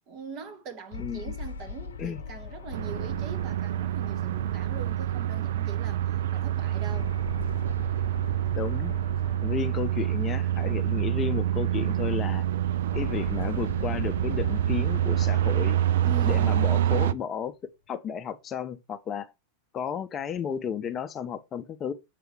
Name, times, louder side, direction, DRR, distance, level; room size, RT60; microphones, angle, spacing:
voice 1, 0.1-7.2 13.0-13.1 16.0-16.7, right 5 dB, 40° right, 1.7 m, -42 dB
sound 1, 0.9-5.5 6.9-11.3 12.9-17.5, left 4 dB, 65° left, 0.8 m, -41 dB
voice 2, 1.0-1.3 2.0-2.2 8.6-9.0 9.4-12.4 12.9-15.8 16.2-17.6 17.9-19.3 19.7-21.9, left 8 dB, 25° left, 0.6 m, -33 dB
sound 2, 2.7-17.1, right 12 dB, 60° right, 0.5 m, -27 dB
7.6 x 4.7 x 4.7 m
figure-of-eight pair, 90°, 0 cm